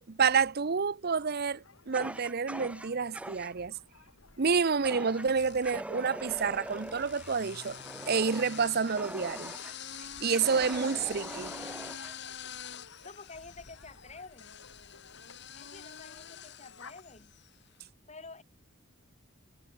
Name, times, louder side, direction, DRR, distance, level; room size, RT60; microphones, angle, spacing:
voice 1, 0.1-3.7 4.4-7.8 8.1-9.5 10.2-11.5, right 5 dB, 50° right, 0.7 m, -29 dB
sound 1, 1.2-17.0, left 4 dB, 85° left, 6.5 m, -57 dB
Fire, 1.9-3.5 4.8-5.3 5.6-9.8 10.3-12.1, right 1 dB, 5° right, 0.5 m, -43 dB
sound 2, 3.9-4.6 5.3-17.6, left 8 dB, 55° left, 2.2 m, -46 dB
voice 2, 13.0-14.6 15.6-17.4 18.1-18.4, left 3 dB, 35° left, 4.7 m, -49 dB
head